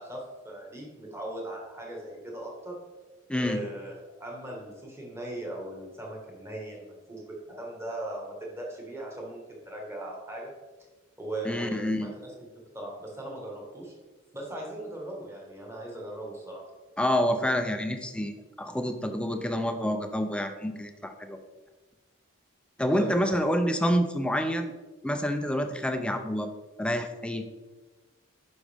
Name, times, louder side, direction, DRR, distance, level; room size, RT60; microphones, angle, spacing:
voice 1, 0.0-2.8 3.3-3.9 4.2-10.5 11.2-12.3 12.7-13.9 14.3-16.7 22.9-23.2, right 1 dB, 15° right, -2 dB, 1.7 m, -39 dB
voice 2, 3.3-3.6 11.4-12.1 17.0-21.4 22.8-24.7 25.0-26.5 26.8-27.4, equal, 5° left, 7 dB, 0.5 m, -28 dB
11.0 x 5.2 x 3.5 m, 1.2 s
head